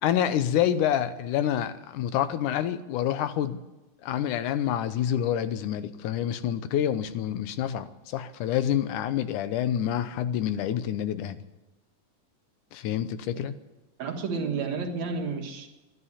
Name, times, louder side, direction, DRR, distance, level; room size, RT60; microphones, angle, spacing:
voice 1, 0.0-3.6 4.0-11.4 12.7-13.5, left 10 dB, 85° left, 12 dB, 2.3 m, -27 dB
voice 2, 14.0-15.7, right 4 dB, 65° right, 3 dB, 2.8 m, -31 dB
12.5 x 11.0 x 9.8 m, 1.1 s
omnidirectional pair, 3.5 m